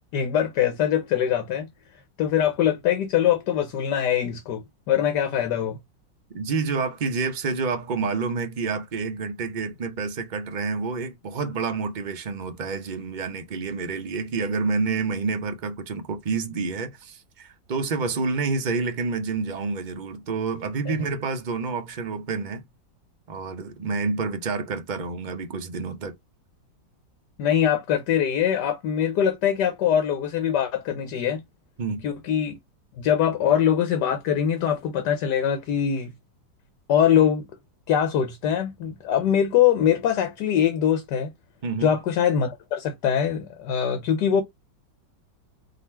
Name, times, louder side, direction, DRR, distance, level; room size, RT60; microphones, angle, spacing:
voice 1, 0.1-1.7 2.2-5.8 20.9-21.0 27.4-31.4 32.0-32.6 33.0-36.1 36.9-37.4 37.9-41.3 41.8-44.4, left 9 dB, 70° left, 1.3 m, -23 dB
voice 2, 6.3-22.6 23.3-26.1 31.8-32.0 41.6-41.9, right 4 dB, 60° right, 0.4 m, -28 dB
3.9 x 2.9 x 4.3 m
omnidirectional pair, 2.1 m